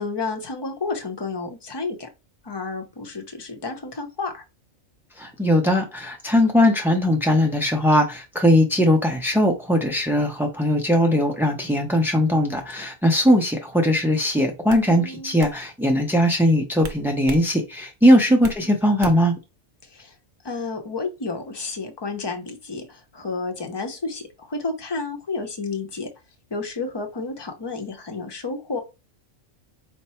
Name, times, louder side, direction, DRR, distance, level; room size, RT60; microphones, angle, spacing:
voice 1, 0.0-2.1 2.4-4.4 14.8-15.3 18.3-18.7 19.8-20.2 20.4-26.1 26.5-28.8, left 3 dB, 25° left, 0.7 m, -31 dB
voice 2, 5.2-19.3, equal, 5° right, 0.3 m, -19 dB
sound 1, 13.9-14.1 14.7-14.9 15.4-15.6 16.8-17.5 17.8-18.6 19.0-19.4, right 5 dB, 65° right, 0.9 m, -36 dB
5.1 x 2.1 x 4.3 m
omnidirectional pair, 1.3 m